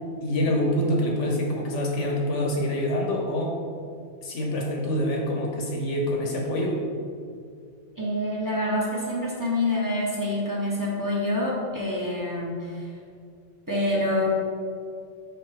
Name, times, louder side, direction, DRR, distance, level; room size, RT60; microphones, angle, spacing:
voice 1, 0.2-3.6 4.2-6.8, left 1 dB, 85° left, 0 dB, 1.3 m, -26 dB
voice 2, 8.0-12.9 13.7-14.3, left 1 dB, 15° right, -5 dB, 1.2 m, -26 dB
5.7 x 5.4 x 3.7 m, 2.2 s
omnidirectional pair, 1.2 m